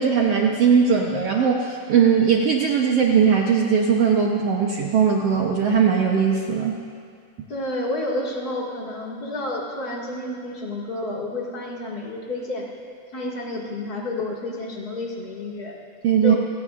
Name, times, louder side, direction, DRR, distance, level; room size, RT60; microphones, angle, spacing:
voice 1, 0.0-6.8 16.0-16.3, right 6 dB, 65° right, 0 dB, 1.6 m, -19 dB
voice 2, 7.5-12.7 13.1-15.8 16.2-16.4, left 2 dB, 35° left, -3 dB, 2.2 m, -30 dB
29.0 x 17.0 x 2.5 m, 2.2 s
omnidirectional pair, 3.6 m